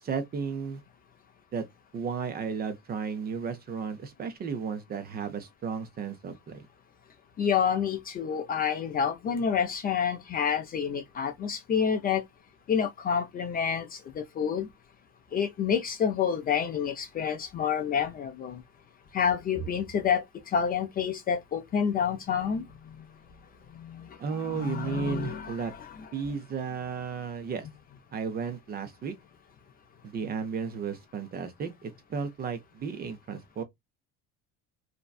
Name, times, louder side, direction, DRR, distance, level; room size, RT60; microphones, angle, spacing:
voice 1, 0.0-0.8 1.5-1.7 1.9-6.7 24.2-25.7 26.1-27.7 28.1-29.2 30.0-33.6, right 6 dB, 30° right, 0.5 m, -34 dB
voice 2, 7.4-12.2 12.7-14.7 15.3-18.6 19.1-22.6 23.8-24.1 24.4-25.9, left 7 dB, 30° left, 0.4 m, -28 dB
2.6 x 2.1 x 2.3 m
cardioid pair, 125°, 33 cm